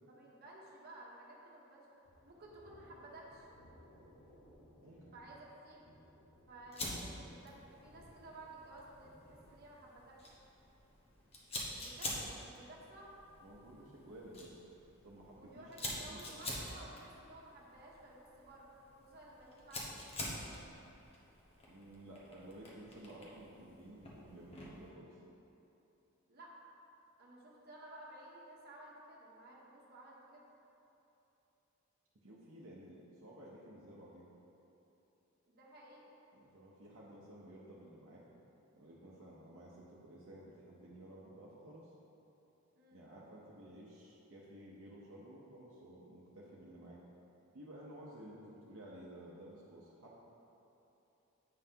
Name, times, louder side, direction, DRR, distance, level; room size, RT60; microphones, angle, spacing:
voice 1, 0.1-1.9 2.2-3.5 5.1-5.9 6.5-10.4 11.8-13.1 15.4-18.7 18.9-20.4 26.3-26.6 27.2-30.5 35.5-36.0 42.8-43.1, right 1 dB, 50° right, -3 dB, 1.0 m, -55 dB
Thunder, 2.0-17.6, equal, 60° left, 1.0 m, -65 dB
voice 2, 4.8-5.1 13.4-14.6 15.0-16.4 21.7-25.2 32.2-34.3 36.3-38.2 38.8-41.9 42.9-47.0 47.5-50.2, right 1 dB, 65° right, -6 dB, 0.8 m, -54 dB
Fire, 6.7-24.9, left 1 dB, 30° left, 1.0 m, -47 dB
8.4 x 5.5 x 2.8 m, 3.0 s
head